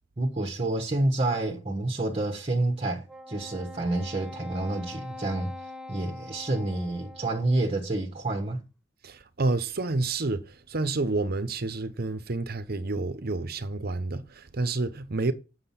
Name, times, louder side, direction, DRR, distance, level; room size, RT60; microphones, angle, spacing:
voice 1, 0.2-8.6, right 2 dB, 30° right, 1.3 m, -29 dB
Wind instrument woodwind instrument, 3.1-7.7, left 2 dB, 5° right, 1.2 m, -43 dB
voice 2, 9.0-15.3, right 3 dB, 50° right, 0.9 m, -29 dB
8.9 x 6.6 x 5.7 m
head